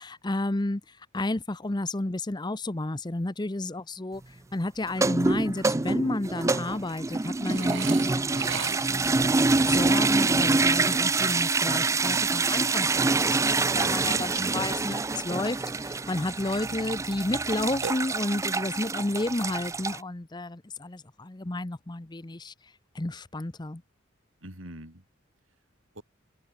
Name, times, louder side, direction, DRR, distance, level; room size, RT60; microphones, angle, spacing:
voice 1, 0.0-9.2 9.6-22.5 22.9-23.8, left 2 dB, 20° left, 0.7 m, -32 dB
sound 1, 4.9-20.0, right 3 dB, 15° right, 0.4 m, -26 dB
Burping eructation, 7.4-9.2 17.8-18.6, right 8 dB, 60° right, 0.7 m, -37 dB
voice 2, 13.7-14.7 24.4-25.0 25.9-26.0, right 2 dB, 80° right, 6.6 m, -42 dB
open air
head